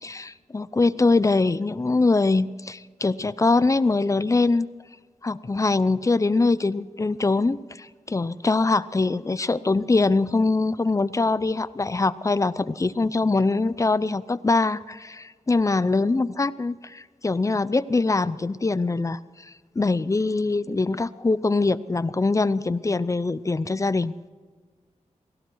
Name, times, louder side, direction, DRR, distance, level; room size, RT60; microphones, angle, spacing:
voice 1, 0.0-4.7 5.2-24.1, left 3 dB, 25° left, 16 dB, 0.5 m, -23 dB
18.0 x 17.0 x 4.7 m, 1.5 s
wide cardioid pair, 115°, 13 cm